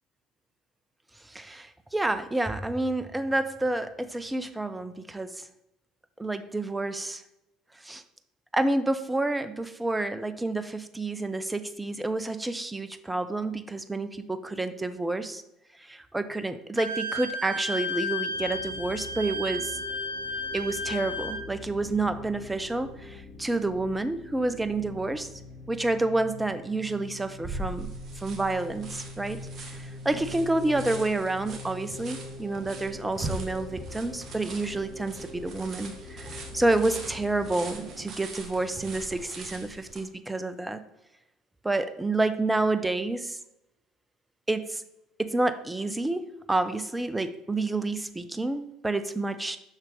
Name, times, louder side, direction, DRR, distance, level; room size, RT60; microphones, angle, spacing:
voice 1, 1.2-5.5 6.2-7.2 7.8-8.0 8.5-15.4 15.8-19.8 20.5-25.3 25.7-27.9 28.2-40.8 41.6-43.4 44.5-44.8 45.2-49.6, right 2 dB, 10° right, 12 dB, 0.6 m, -29 dB
Wind instrument woodwind instrument, 16.8-21.4, left 1 dB, 85° right, 0.6 m, -33 dB
sound 1, 18.3-37.5, left 2 dB, 25° left, 2.4 m, -43 dB
sound 2, 27.4-40.0, right 3 dB, 40° right, 1.5 m, -41 dB
6.5 x 5.9 x 3.7 m, 0.91 s
figure-of-eight pair, 60°, 0 cm